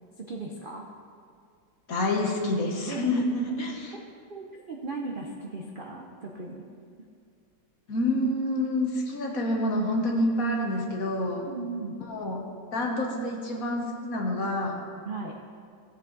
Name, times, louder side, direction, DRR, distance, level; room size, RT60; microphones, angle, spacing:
voice 1, 0.2-0.9 2.8-3.2 4.3-6.7 11.4-11.9 15.0-15.3, right 3 dB, 50° right, 0 dB, 0.6 m, -37 dB
voice 2, 1.9-3.9 7.9-11.5 12.1-12.4 12.7-14.8, left 1 dB, 55° left, 0 dB, 1.6 m, -27 dB
16.0 x 7.0 x 4.0 m, 2.2 s
omnidirectional pair, 1.9 m